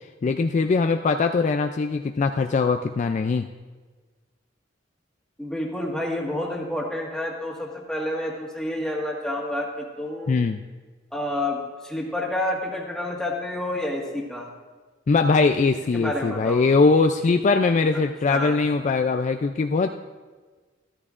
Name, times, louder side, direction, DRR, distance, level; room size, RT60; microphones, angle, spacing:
voice 1, 0.2-3.5 10.3-10.6 15.1-19.9, left 4 dB, 40° left, 6 dB, 0.3 m, -21 dB
voice 2, 5.4-10.3 11.1-14.5 15.9-16.6 18.3-18.6, left 1 dB, 5° left, -2 dB, 1.6 m, -29 dB
13.5 x 13.0 x 2.5 m, 1.4 s
head